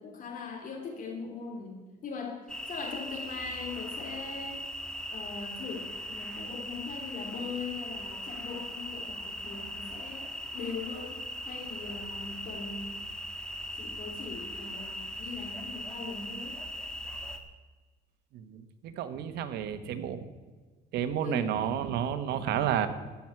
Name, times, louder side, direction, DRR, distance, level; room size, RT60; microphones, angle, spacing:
voice 1, 0.0-4.6 5.1-12.9 13.7-16.6 21.2-21.5, left 5 dB, 55° left, 2 dB, 3.3 m, -41 dB
sound 1, 2.5-17.4, equal, 5° left, 1.5 m, -39 dB
voice 2, 18.3-20.3 20.9-22.9, right 9 dB, 80° right, 10 dB, 1.2 m, -31 dB
14.5 x 6.1 x 9.6 m, 1.4 s
cardioid pair, 110°, 17 cm